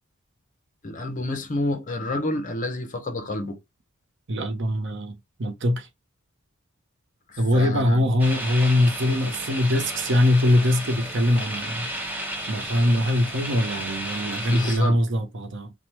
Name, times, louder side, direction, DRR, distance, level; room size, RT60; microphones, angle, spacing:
voice 1, 0.8-3.6 7.3-8.1 14.5-15.0, left 2 dB, 35° left, 0.6 m, -29 dB
voice 2, 4.3-5.9 7.4-11.9 12.5-15.7, left 1 dB, 55° right, 0.6 m, -22 dB
sound 1, 8.2-14.8, equal, 10° right, 0.6 m, -33 dB
2.9 x 2.1 x 3.0 m
head